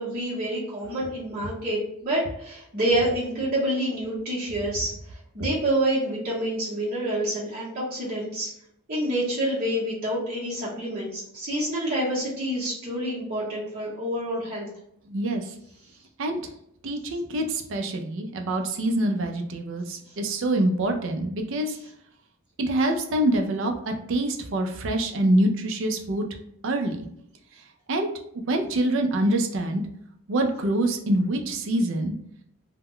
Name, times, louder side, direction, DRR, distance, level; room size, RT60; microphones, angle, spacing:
voice 1, 0.0-4.9 5.3-8.5 8.9-14.7, right 1 dB, 45° right, -9 dB, 0.8 m, -27 dB
voice 2, 15.1-15.5 16.2-16.4 16.8-21.8 22.6-26.2 26.6-27.1 27.9-28.1 28.5-29.8 30.3-32.1, right 1 dB, 60° right, 4 dB, 0.4 m, -25 dB
2.1 x 2.0 x 3.6 m, 0.72 s
head